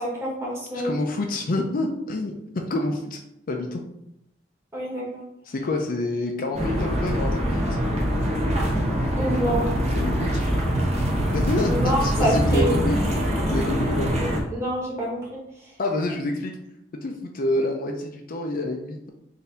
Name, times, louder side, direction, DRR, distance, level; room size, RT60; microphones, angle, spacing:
voice 1, 0.0-1.0 4.7-5.2 9.2-9.6 11.6-12.7 14.1-14.2 14.5-15.2, equal, 15° right, -5 dB, 1.4 m, -26 dB
voice 2, 0.7-2.3 2.7-3.2 3.5-3.8 5.4-7.8 9.9-10.4 11.3-14.1 15.8-16.6 16.9-19.1, left 2 dB, 50° left, 3 dB, 0.5 m, -28 dB
sound 1, 6.5-14.4, equal, 35° right, 0.9 m, -24 dB
4.0 x 2.7 x 3.9 m, 0.81 s
head